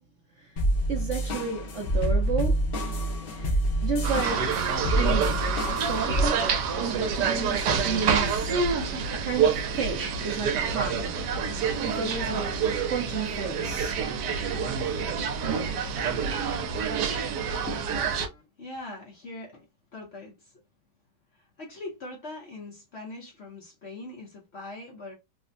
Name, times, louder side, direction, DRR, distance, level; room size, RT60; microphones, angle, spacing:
sound 1, 0.6-6.3, equal, 85° left, 0.5 m, -27 dB
voice 1, 0.9-2.7 3.2-4.6 5.0-5.3 5.9-6.5 6.8-8.5 9.1-11.1 11.8-12.6 12.9-14.0, right 5 dB, 65° right, 0.8 m, -32 dB
sound 2, 4.0-18.3, right 6 dB, 80° right, 1.2 m, -27 dB
voice 2, 17.6-20.5 21.3-25.2, left 2 dB, 50° left, 0.8 m, -42 dB
3.4 x 2.1 x 2.5 m
omnidirectional pair, 1.8 m